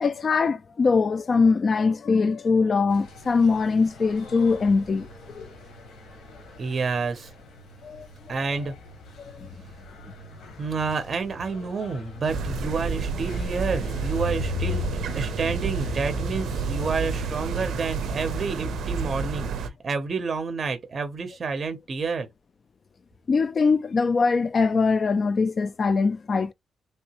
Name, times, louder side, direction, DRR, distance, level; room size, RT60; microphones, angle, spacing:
voice 1, 0.0-5.5 7.8-8.1 9.2-9.5 23.3-26.5, left 4 dB, 35° left, 0.3 m, -22 dB
sound 1, 2.9-19.3, left 3 dB, 85° left, 1.1 m, -40 dB
voice 2, 6.6-7.3 8.3-8.7 10.6-14.8 15.1-22.3, right 4 dB, 35° right, 0.6 m, -29 dB
sound 2, 12.3-19.7, right 4 dB, 80° right, 0.5 m, -30 dB
3.3 x 2.7 x 2.8 m
wide cardioid pair, 160°, 0 cm